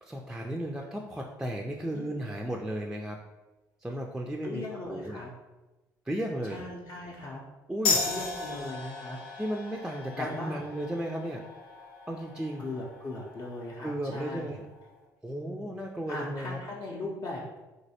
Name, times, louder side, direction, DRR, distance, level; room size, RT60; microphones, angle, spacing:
voice 1, 0.0-3.2 3.8-4.6 4.9-5.2 6.1-6.6 7.7-8.0 9.4-11.4 12.1-12.7 13.8-14.6 15.2-16.6, right 1 dB, 5° right, 1 dB, 0.3 m, -34 dB
voice 2, 4.4-5.3 6.5-7.4 8.0-9.2 10.2-10.6 12.6-14.6 15.3-15.7 16.1-17.5, left 2 dB, 40° left, -4 dB, 0.6 m, -39 dB
sound 1, 7.8-14.9, left 4 dB, 65° left, 0.8 m, -36 dB
3.0 x 2.7 x 2.7 m, 1.1 s
hypercardioid pair, 55°, 10 cm